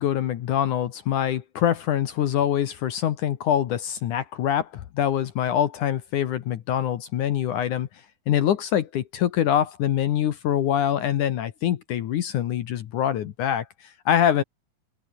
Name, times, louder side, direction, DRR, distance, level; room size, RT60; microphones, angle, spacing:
voice 1, 0.0-7.9 8.3-14.4, left 10 dB, 65° left, 2.0 m, -24 dB
open air
omnidirectional pair, 5.1 m